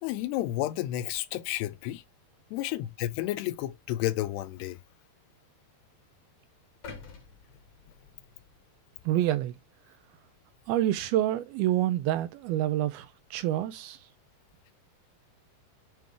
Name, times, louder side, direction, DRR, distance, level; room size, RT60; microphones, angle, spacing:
voice 1, 0.0-2.0 2.5-4.8, left 14 dB, 85° left, 2.8 m, -31 dB
sound 1, 6.8-9.0 9.5-9.6, left 4 dB, 50° left, 2.2 m, -48 dB
voice 2, 9.1-9.6 10.7-14.0, right 13 dB, 80° right, 2.3 m, -27 dB
9.2 x 3.5 x 3.4 m
omnidirectional pair, 4.7 m